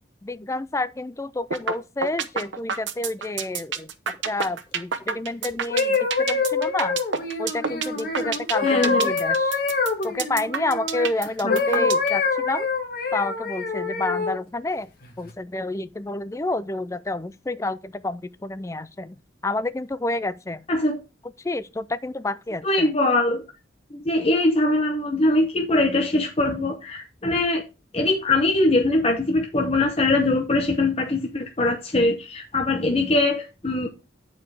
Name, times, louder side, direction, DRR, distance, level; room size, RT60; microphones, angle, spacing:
voice 1, 0.2-7.0 7.4-9.6 10.0-12.7 13.1-14.9 15.2-19.2 19.4-20.6 21.4-22.9, left 2 dB, 15° left, 0.3 m, -29 dB
sound 1, 1.5-1.7 2.0-12.1, right 6 dB, 75° right, 0.9 m, -27 dB
sound 2, 5.5-11.1 11.5-14.4 15.0-15.3, left 4 dB, 50° left, 1.8 m, -25 dB
voice 2, 8.6-9.1 11.4-11.9 20.7-21.0 22.6-23.4 23.9-27.6 27.9-33.9, left 2 dB, 30° left, 0.8 m, -22 dB
8.8 x 4.8 x 4.7 m
head